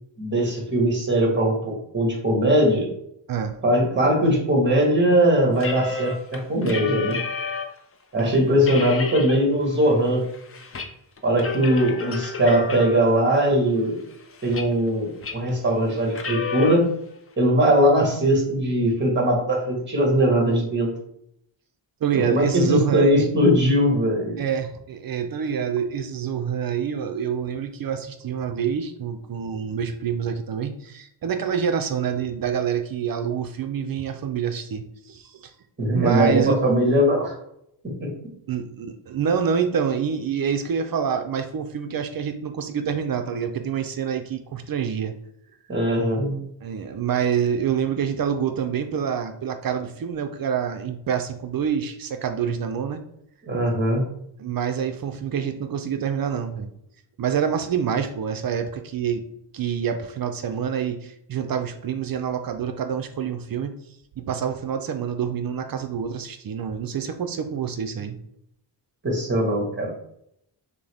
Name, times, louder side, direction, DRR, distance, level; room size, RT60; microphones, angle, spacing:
voice 1, 0.2-2.9 3.6-7.2 8.1-10.2 11.2-14.0 14.4-16.9 17.4-20.9 22.1-24.4 35.8-37.3 37.8-38.1 45.7-46.4 53.5-54.1 69.0-69.9, equal, 25° right, -1 dB, 1.3 m, -20 dB
sound 1, 5.6-7.8 8.2-8.3 8.6-9.4 9.8-10.9 11.2-13.2 13.8-14.9 15.2-15.5 16.1-16.7, left 5 dB, 30° left, 0.5 m, -31 dB
voice 2, 22.0-23.3 24.4-35.5 35.9-36.6 38.5-45.1 46.6-53.0 54.4-56.7 57.2-59.2 59.5-63.7 64.2-68.2, right 7 dB, 50° right, 7 dB, 0.5 m, -26 dB
5.8 x 2.1 x 3.4 m, 0.74 s
wide cardioid pair, 135°, 45 cm